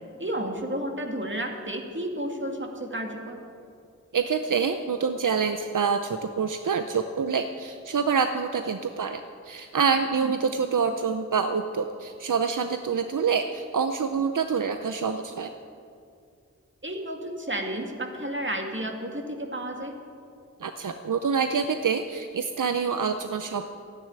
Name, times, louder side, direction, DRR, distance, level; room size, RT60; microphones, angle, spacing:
voice 1, 0.2-3.4 10.2-10.3 16.8-20.0, right 1 dB, 40° right, 2 dB, 2.2 m, -32 dB
voice 2, 4.1-15.5 20.6-23.7, right 6 dB, 85° right, 8 dB, 0.6 m, -26 dB
13.0 x 9.8 x 9.6 m, 2.4 s
wide cardioid pair, 50°, 31 cm